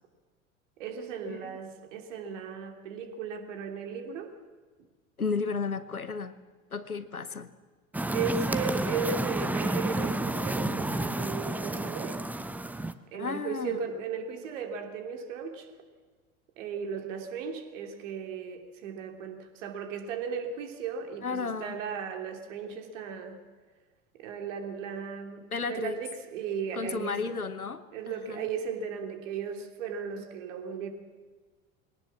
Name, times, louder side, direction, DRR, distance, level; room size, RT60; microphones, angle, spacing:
voice 1, 0.8-4.3 8.1-12.2 13.1-15.7 16.6-23.4 24.1-27.2 27.9-30.9, right 6 dB, 60° right, 5 dB, 3.0 m, -36 dB
voice 2, 5.2-6.3 6.7-7.5 13.1-13.8 21.2-21.8 25.5-26.0 26.7-28.5, left 4 dB, 85° left, 14 dB, 1.1 m, -33 dB
sound 1, 7.9-12.9, right 2 dB, 5° right, 0.8 m, -30 dB
22.0 x 18.0 x 7.3 m, 1.4 s
figure-of-eight pair, 75°, 42 cm